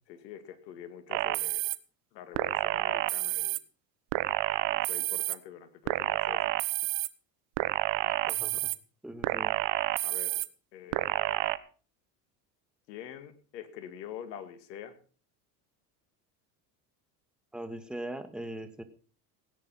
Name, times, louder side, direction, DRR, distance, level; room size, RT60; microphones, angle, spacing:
voice 1, 0.1-1.6 2.1-3.6 4.7-6.6 10.0-10.4 10.7-11.5 12.9-15.0, left 10 dB, 85° left, 11 dB, 2.3 m, -45 dB
sound 1, 1.1-1.8 2.3-3.6 4.1-5.3 5.9-7.1 7.6-8.7 9.2-10.5 10.9-11.6, right 20 dB, 60° right, 1.1 m, -29 dB
voice 2, 8.0-8.6 9.0-9.6 17.5-18.8, right 1 dB, ahead, 9 dB, 1.8 m, -40 dB
17.0 x 9.8 x 5.6 m, 0.40 s
hypercardioid pair, 90°, 49 cm